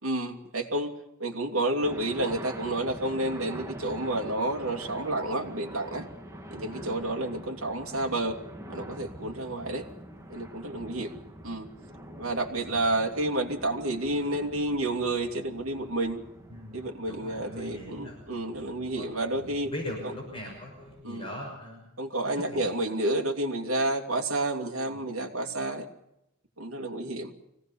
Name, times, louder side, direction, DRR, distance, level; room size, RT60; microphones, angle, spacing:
voice 1, 0.0-6.1 6.5-8.4 8.7-9.9 10.3-11.1 11.4-11.7 12.2-16.2 16.7-19.7 20.0-20.1 21.0-21.3 22.0-25.9 26.6-27.3, right 1 dB, 70° right, 2 dB, 2.7 m, -30 dB
sound 1, 1.8-21.0, right 1 dB, 15° right, 2.1 m, -45 dB
voice 2, 6.5-6.9 12.7-13.0 16.5-18.3 18.8-21.9 22.5-22.9 24.9-25.0, left 1 dB, 25° left, 0 dB, 6.0 m, -41 dB
24.5 x 17.5 x 7.1 m, 0.84 s
head